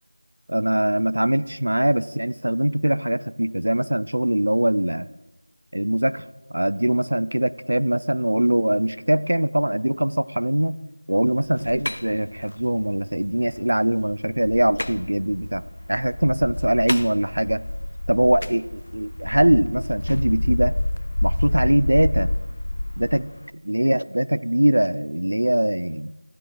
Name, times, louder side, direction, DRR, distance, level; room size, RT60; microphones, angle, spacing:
voice 1, 0.5-5.1 5.7-10.8 11.1-17.6 18.1-20.7 21.2-22.3 23.0-23.3 23.5-26.1, right 1 dB, 70° right, 15 dB, 0.4 m, -22 dB
sound 1, 11.3-23.4, left 1 dB, 60° left, 0.4 m, -28 dB
15.5 x 9.3 x 2.4 m, 1.1 s
figure-of-eight pair, 175°, 0 cm